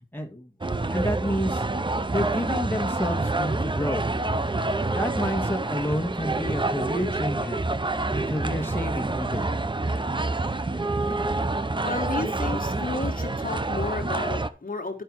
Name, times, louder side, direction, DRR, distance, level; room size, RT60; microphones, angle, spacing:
voice 1, 0.1-0.5 0.8-1.6 2.1-4.0 4.9-7.6 8.1-9.5, equal, 10° left, 1.7 m, -29 dB
sound 1, 0.6-14.5, right 2 dB, 25° right, 0.7 m, -27 dB
voice 2, 11.8-15.0, left 3 dB, 50° left, 1.5 m, -32 dB
10.5 x 5.6 x 4.6 m
cardioid pair, 45°, 18 cm